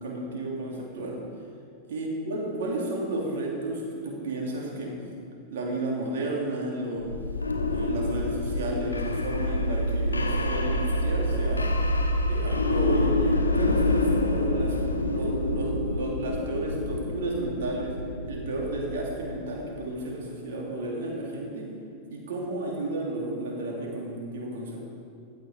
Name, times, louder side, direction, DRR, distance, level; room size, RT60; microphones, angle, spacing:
voice 1, 0.0-1.2 1.9-5.0 5.5-7.1 7.7-11.7 12.3-18.0 18.3-21.7 22.1-24.8, right 2 dB, 60° right, -1 dB, 2.9 m, -32 dB
sound 1, 7.0-19.8, left 1 dB, 80° left, 1.1 m, -27 dB
15.5 x 10.5 x 5.0 m, 2.5 s
figure-of-eight pair, 90°, 0 cm